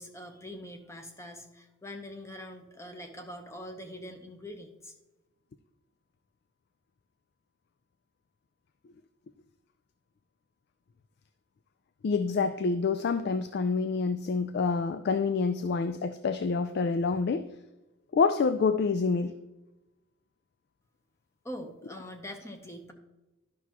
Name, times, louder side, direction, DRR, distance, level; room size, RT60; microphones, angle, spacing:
voice 1, 0.0-4.9 21.4-22.9, left 1 dB, 15° left, 5 dB, 0.9 m, -43 dB
voice 2, 12.0-17.5 18.1-19.3, left 4 dB, 55° left, 11 dB, 0.3 m, -27 dB
11.0 x 6.0 x 2.9 m, 1.0 s
head